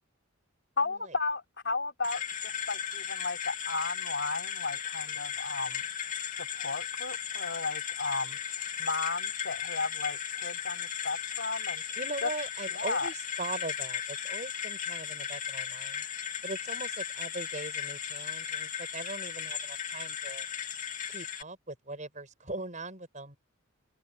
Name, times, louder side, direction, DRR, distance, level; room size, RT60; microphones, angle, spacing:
voice 1, 0.8-5.9 6.4-11.8 12.2-12.3 12.7-13.1, left 3 dB, 55° left, 4.9 m, -34 dB
sound 1, 2.0-21.4, left 8 dB, 35° left, 3.0 m, -36 dB
voice 2, 12.0-16.0 16.4-20.5 21.1-23.4, right 2 dB, 35° right, 7.2 m, -40 dB
head